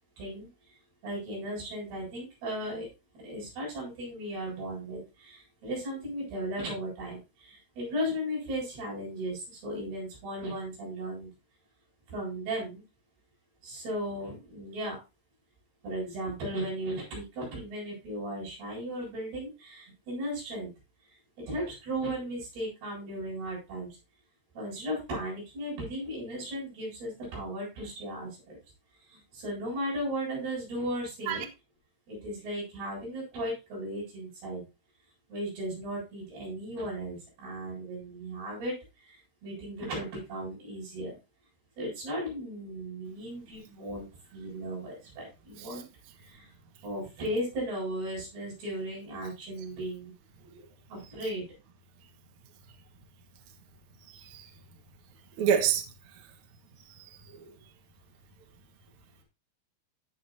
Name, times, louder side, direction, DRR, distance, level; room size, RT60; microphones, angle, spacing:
voice 1, 0.2-0.5 1.0-2.9 3.1-11.3 12.1-12.8 13.6-15.0 15.8-20.7 21.5-23.9 24.5-28.6 29.1-31.5 32.1-34.6 35.3-38.7 39.1-41.1 41.8-44.1 44.3-45.9 46.3-46.5 46.8-50.1 50.9-51.5, equal, 50° right, 9.9 m, -36 dB
voice 2, 54.1-54.5 55.4-55.8 57.0-57.2, right 8 dB, 90° right, 1.6 m, -28 dB
17.0 x 6.8 x 2.8 m
omnidirectional pair, 5.9 m